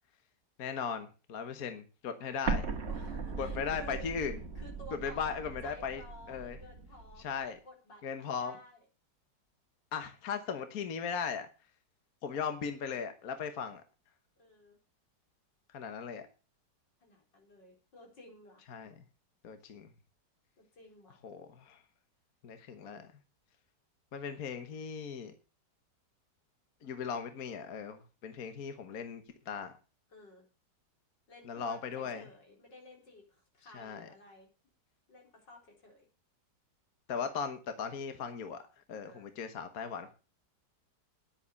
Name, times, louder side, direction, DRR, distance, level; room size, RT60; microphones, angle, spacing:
voice 1, 0.6-2.8 3.4-4.3 5.0-6.0 6.3-6.6 7.2-7.6 8.0-8.6 9.9-11.5 12.2-13.8 15.7-16.3 18.7-18.9 19.4-19.9 21.2-21.8 22.4-23.1 24.1-25.3 26.8-29.7 31.4-32.2 33.7-34.1 37.1-38.6 38.9-40.1, left 6 dB, 60° left, 1.5 m, -38 dB
Explosion, 2.5-7.2, right 4 dB, 40° right, 1.5 m, -38 dB
voice 2, 2.9-4.0 4.5-7.3 7.6-8.8 14.4-14.8 17.0-18.6 19.6-19.7 20.6-21.2 30.1-30.5 31.3-34.5 35.1-36.1 39.0-39.3, equal, 85° left, 4.7 m, -54 dB
10.5 x 8.6 x 6.9 m
omnidirectional pair, 1.9 m